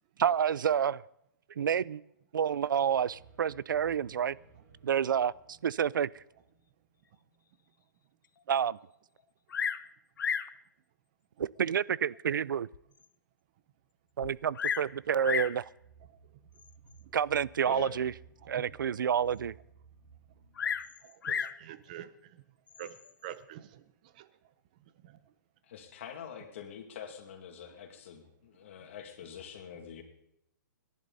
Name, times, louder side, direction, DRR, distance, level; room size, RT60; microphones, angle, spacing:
voice 1, 0.2-1.0 1.6-2.0 2.3-4.3 4.8-5.3 5.6-6.1 8.5-8.8 11.4-12.7 14.2-15.6 17.1-18.1 18.5-19.5, right 8 dB, 80° right, 0.5 m, -29 dB
sound 1, 2.7-7.7 13.8-20.8, right 5 dB, 55° right, 6.4 m, -59 dB
Bird vocalization bird call bird song, 9.5-9.9 10.2-10.6 11.4-11.5 12.1-12.2 12.7-12.8 13.0-13.1 14.2-14.9 15.2-15.6 16.6-16.9 20.6-21.6 22.7-23.1, left 7 dB, 80° left, 0.8 m, -33 dB
voice 2, 17.6-18.0 25.6-30.0, left 8 dB, 40° left, 2.4 m, -46 dB
voice 3, 21.0-22.1 22.8-23.0 23.2-23.8 24.2-24.3 25.0-25.2, right 12 dB, 25° right, 0.7 m, -45 dB
29.5 x 11.0 x 4.1 m
hypercardioid pair, 175°, 11 cm